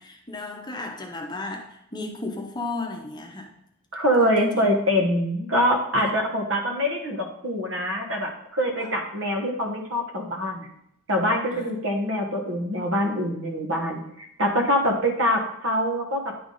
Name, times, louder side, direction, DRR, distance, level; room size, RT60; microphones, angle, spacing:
voice 1, 0.0-3.5 4.2-4.7 8.8-8.9 11.5-11.7 12.2-12.4, left 3 dB, 20° left, 1 dB, 0.8 m, -34 dB
voice 2, 3.9-10.7 11.1-16.4, equal, 60° right, 1 dB, 1.3 m, -24 dB
10.0 x 3.5 x 3.9 m, 0.75 s
head